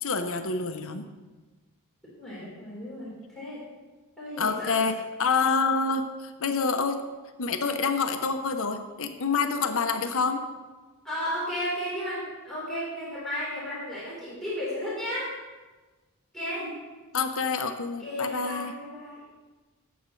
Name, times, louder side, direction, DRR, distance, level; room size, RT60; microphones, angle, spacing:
voice 1, 0.0-1.1 4.4-7.0 7.4-10.4 17.1-18.7, left 4 dB, 65° left, 7 dB, 0.9 m, -27 dB
voice 2, 2.2-3.6 4.2-4.8 11.0-15.3 16.3-16.8 18.0-19.2, equal, ahead, -10 dB, 4.0 m, -33 dB
18.0 x 8.0 x 3.2 m, 1.2 s
head